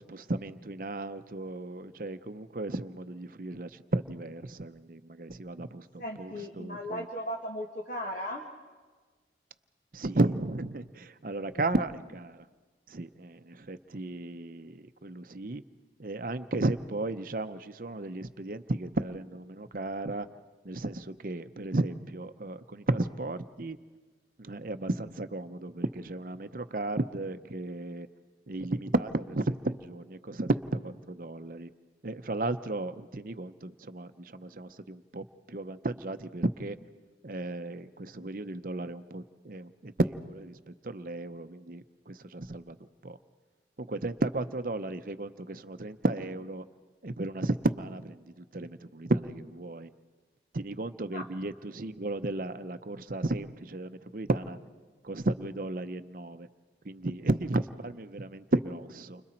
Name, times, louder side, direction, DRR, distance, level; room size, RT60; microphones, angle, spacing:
voice 1, 0.0-7.1 9.9-12.5 12.9-15.6 16.0-20.3 20.6-23.8 24.4-28.1 28.5-31.7 32.0-36.8 37.2-42.8 43.0-43.2 43.8-46.6 47.0-49.9 50.5-54.6 55.0-56.5 56.8-59.2, right 2 dB, 50° right, 11 dB, 0.7 m, -33 dB
voice 2, 6.0-8.5 11.4-11.7 51.1-51.3, equal, 45° left, 1 dB, 1.6 m, -37 dB
30.0 x 25.5 x 4.4 m, 1.4 s
head